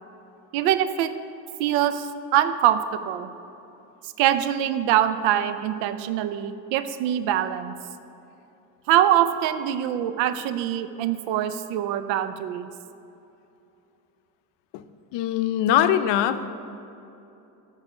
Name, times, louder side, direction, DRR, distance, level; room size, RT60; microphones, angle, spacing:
voice 1, 0.5-1.1 1.6-3.3 4.2-7.7 8.9-12.7, right 11 dB, 80° right, 11 dB, 0.6 m, -23 dB
voice 2, 15.1-16.5, left 11 dB, 70° left, 11 dB, 0.6 m, -22 dB
9.9 x 5.6 x 4.9 m, 2.9 s
supercardioid pair, 75°, 44 cm